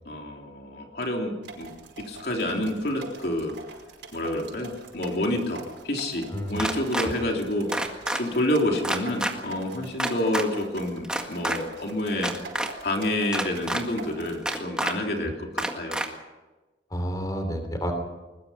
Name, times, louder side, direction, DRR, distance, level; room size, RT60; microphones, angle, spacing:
voice 1, 0.0-1.7 2.1-3.5 4.1-12.3 12.8-16.0, left 1 dB, 55° left, 1 dB, 3.3 m, -28 dB
sound 1, 1.4-14.5, right 3 dB, 90° right, 5.3 m, -44 dB
voice 2, 6.3-6.6 7.0-7.1 16.9-17.9, equal, 20° left, 5 dB, 3.3 m, -30 dB
sound 2, 6.6-7.1 7.7-8.2 8.8-9.3 10.0-10.4 11.0-11.6 12.2-12.7 13.3-13.8 14.5-14.9 15.6-16.1, right 1 dB, 5° right, 1.8 m, -27 dB
21.5 x 21.5 x 5.8 m, 1.2 s
head